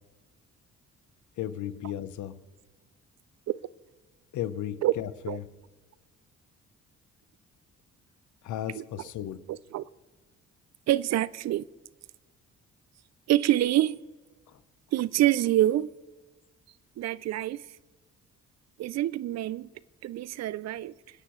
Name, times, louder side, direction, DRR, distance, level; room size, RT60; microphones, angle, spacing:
voice 1, 1.4-2.4 4.3-5.5 8.4-9.4 14.5-14.6, left 11 dB, 75° left, 13 dB, 0.8 m, -35 dB
voice 2, 9.5-9.8 10.9-11.7 13.3-14.0 14.9-15.9 17.0-17.7 18.8-19.7 20.0-20.9, right 14 dB, 60° right, 20 dB, 0.4 m, -26 dB
26.5 x 10.0 x 3.1 m, 1.2 s
cardioid pair, 90°, 30 cm